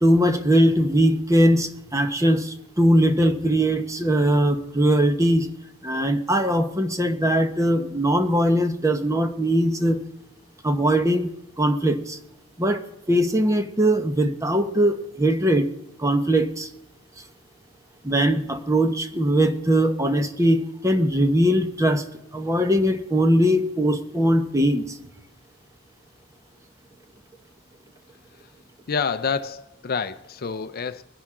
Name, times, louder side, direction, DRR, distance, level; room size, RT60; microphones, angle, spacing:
voice 1, 0.0-5.5 5.8-10.0 10.6-11.3 11.6-12.2 12.6-12.8 13.1-15.7 16.0-16.7 18.0-22.0 22.3-25.0, equal, 15° right, 1.0 m, -20 dB
voice 2, 28.9-31.0, left 5 dB, 45° left, 0.5 m, -28 dB
22.0 x 10.5 x 3.8 m
head